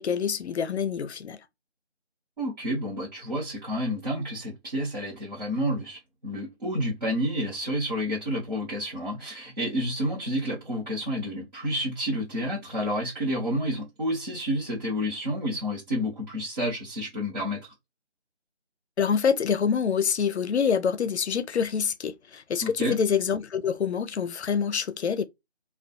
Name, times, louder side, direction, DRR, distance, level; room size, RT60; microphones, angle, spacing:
voice 1, 0.0-1.4 19.0-25.2, left 7 dB, 75° left, 0.5 m, -26 dB
voice 2, 2.4-17.7 22.6-23.0, equal, 40° right, 1.1 m, -30 dB
2.4 x 2.2 x 2.3 m
figure-of-eight pair, 175°, 34 cm